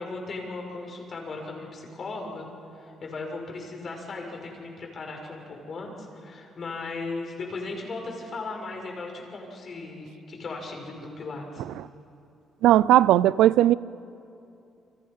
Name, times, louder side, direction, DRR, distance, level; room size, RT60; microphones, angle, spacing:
voice 1, 0.0-2.5 2.7-11.6, left 3 dB, 50° left, 6.4 m, -37 dB
voice 2, 12.6-13.7, right 13 dB, 90° right, 0.5 m, -17 dB
30.0 x 24.5 x 5.7 m
cardioid pair, 90°, 0 cm